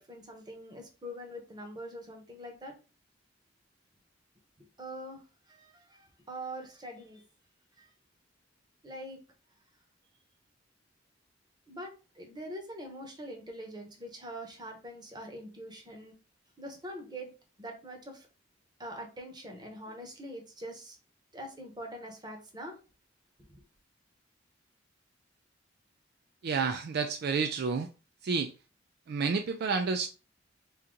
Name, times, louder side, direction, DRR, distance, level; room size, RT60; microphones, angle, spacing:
voice 1, 0.0-2.7 4.8-5.2 5.5-7.2 7.8-7.9 8.8-9.2 11.7-16.1 16.6-17.3 17.6-18.3 18.8-21.0 21.3-22.7 23.5-23.6, equal, 25° right, 1.0 m, -43 dB
voice 2, 26.4-27.9 28.2-28.5 29.1-30.1, right 5 dB, 55° right, 0.4 m, -30 dB
3.7 x 2.8 x 3.8 m
head